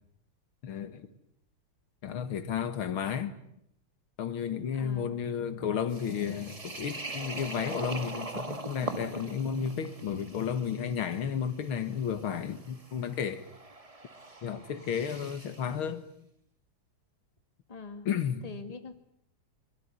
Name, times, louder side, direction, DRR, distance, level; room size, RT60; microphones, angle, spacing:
voice 1, 0.6-1.1 2.0-3.3 4.2-13.5 14.4-16.0 18.1-18.5, left 8 dB, 80° left, 2.4 m, -32 dB
voice 2, 4.7-5.2 17.7-18.1 18.4-19.0, left 4 dB, 20° left, 2.1 m, -43 dB
sound 1, 5.9-15.7, right 2 dB, 20° right, 1.5 m, -42 dB
25.0 x 22.5 x 9.7 m
omnidirectional pair, 2.3 m